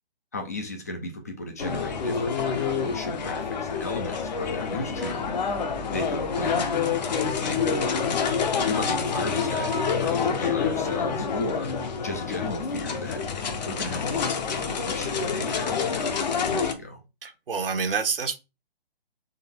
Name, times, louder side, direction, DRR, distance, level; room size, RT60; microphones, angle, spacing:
voice 1, 0.3-5.3 5.9-6.9 7.4-7.6 8.5-11.7 12.0-13.2 13.6-17.0, left 2 dB, 15° left, 0.4 m, -35 dB
sound 1, 1.6-16.7, left 6 dB, 45° left, 0.9 m, -27 dB
voice 2, 17.2-18.4, right 5 dB, 65° right, 0.9 m, -27 dB
3.9 x 3.2 x 4.3 m
figure-of-eight pair, 135°, 30 cm